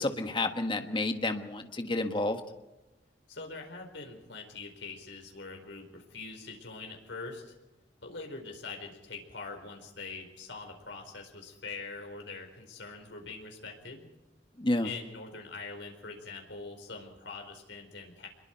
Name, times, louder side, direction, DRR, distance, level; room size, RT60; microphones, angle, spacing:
voice 1, 0.0-2.4 14.6-14.9, left 2 dB, 25° left, 6 dB, 1.5 m, -30 dB
voice 2, 3.3-7.6 8.0-14.1 14.8-18.3, left 4 dB, 70° left, 3 dB, 4.6 m, -43 dB
26.0 x 22.0 x 4.6 m, 1.0 s
head